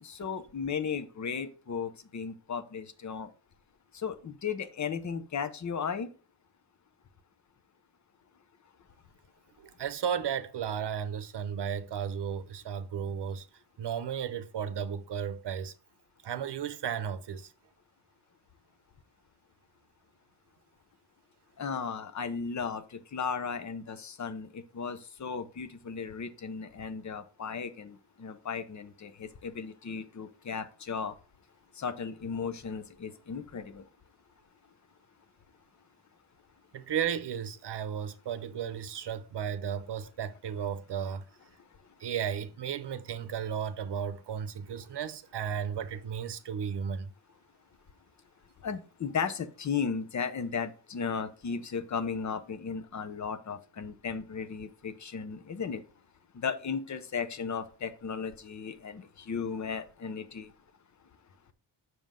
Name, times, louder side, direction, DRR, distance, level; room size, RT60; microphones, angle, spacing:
voice 1, 0.0-3.3 3.9-6.1 21.6-31.1 31.8-33.8 48.6-55.8 56.3-60.5, left 6 dB, 40° left, 0.8 m, -35 dB
voice 2, 9.6-13.5 13.8-15.7 16.2-17.5 36.7-41.2 42.0-47.1, right 8 dB, 70° right, 0.8 m, -34 dB
7.2 x 6.2 x 3.7 m
wide cardioid pair, 155°, 43 cm